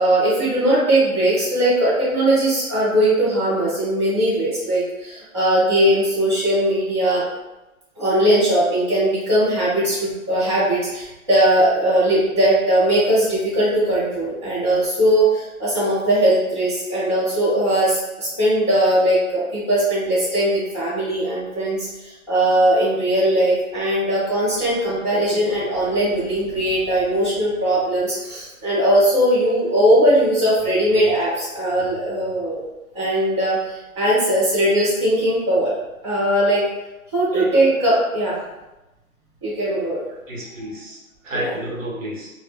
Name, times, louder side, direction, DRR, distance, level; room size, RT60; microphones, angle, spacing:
voice 1, 0.0-7.2 8.0-32.6 32.9-35.7 36.0-36.6 37.1-38.4 39.4-40.0 41.3-41.5, right 1 dB, 20° right, -13 dB, 0.7 m, -19 dB
voice 2, 40.3-42.3, right 1 dB, 60° right, -3 dB, 0.7 m, -31 dB
2.0 x 2.0 x 3.4 m, 1.0 s
hypercardioid pair, 165°, 43 cm